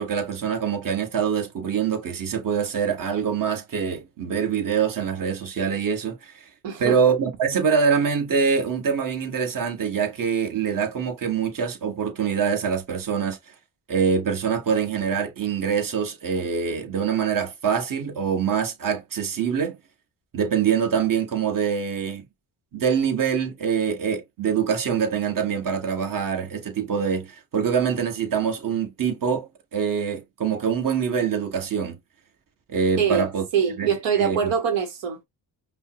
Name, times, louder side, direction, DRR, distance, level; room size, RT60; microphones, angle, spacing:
voice 1, 0.0-6.5 6.8-13.5 13.9-19.8 20.3-22.2 22.7-32.0 32.7-33.4 33.8-34.5, right 6 dB, 45° right, 1.3 m, -24 dB
voice 2, 6.6-6.9 33.0-33.3 33.5-35.2, right 7 dB, 80° right, 1.0 m, -23 dB
5.3 x 2.1 x 2.9 m
cardioid pair, 95°, 44 cm